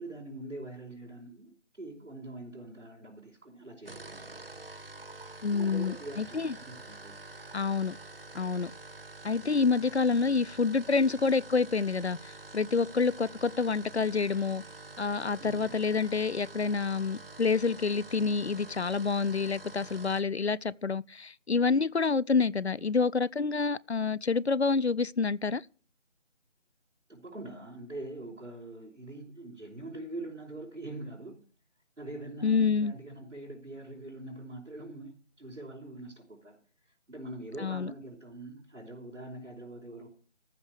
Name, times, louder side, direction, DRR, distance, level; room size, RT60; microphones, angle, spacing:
voice 1, 0.0-4.3 5.5-7.2 15.4-15.6 27.1-31.4 32.0-36.6 37.1-40.1, right 2 dB, 75° right, 5.1 m, -43 dB
sound 1, 3.7-20.3, right 2 dB, 50° right, 0.8 m, -47 dB
voice 2, 5.4-6.5 7.5-8.0 8.3-8.7 9.2-14.6 15.0-25.6 32.4-32.9 37.6-37.9, left 4 dB, 60° left, 0.5 m, -28 dB
14.0 x 5.9 x 8.2 m
figure-of-eight pair, 165°, 37 cm